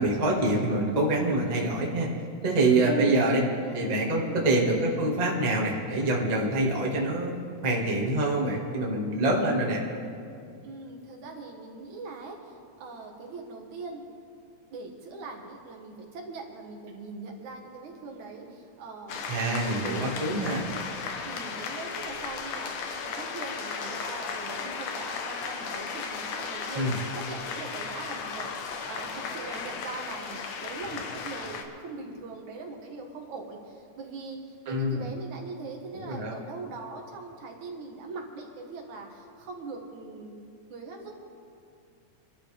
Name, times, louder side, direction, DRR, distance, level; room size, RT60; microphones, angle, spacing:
voice 1, 0.0-2.1 2.4-3.4 3.7-7.3 7.6-9.8 19.3-20.7 26.7-27.0 34.7-35.0 36.0-36.4, right 2 dB, 20° right, -2 dB, 1.1 m, -25 dB
voice 2, 2.8-4.5 10.6-14.0 14.7-20.0 21.2-40.4 40.7-41.1, right 3 dB, 70° right, 1 dB, 2.8 m, -41 dB
sound 1, 19.1-31.6, left 5 dB, 75° left, 2.5 m, -35 dB
25.0 x 12.0 x 3.4 m, 2.5 s
omnidirectional pair, 3.6 m